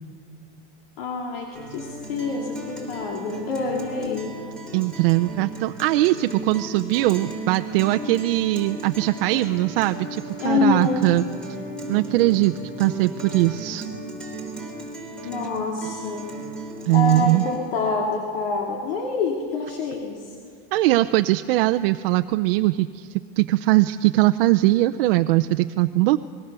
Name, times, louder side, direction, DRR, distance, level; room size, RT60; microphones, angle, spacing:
voice 1, 1.0-4.4 10.4-11.1 15.2-16.4 16.9-20.2, left 4 dB, 70° left, 1 dB, 2.8 m, -26 dB
Guitar, 1.5-17.6, right 1 dB, 5° left, 3.7 m, -36 dB
voice 2, 4.7-11.2 11.9-13.9 16.9-17.4 20.7-23.1 23.4-26.2, right 17 dB, 70° right, 9 dB, 0.6 m, -21 dB
25.5 x 20.5 x 6.8 m, 2.1 s
supercardioid pair, 165°, 30 cm